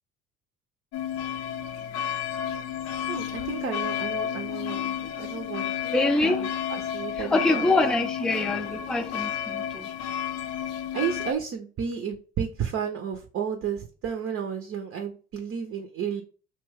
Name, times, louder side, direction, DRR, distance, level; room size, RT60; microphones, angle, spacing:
sound 1, 0.9-11.3, left 9 dB, 60° left, 0.5 m, -31 dB
voice 1, 3.1-5.7 6.2-8.0 10.9-16.2, right 7 dB, 45° right, 0.6 m, -32 dB
voice 2, 5.8-6.4 7.2-9.9, left 2 dB, ahead, 0.4 m, -25 dB
2.9 x 2.2 x 3.2 m
hypercardioid pair, 60°, 29 cm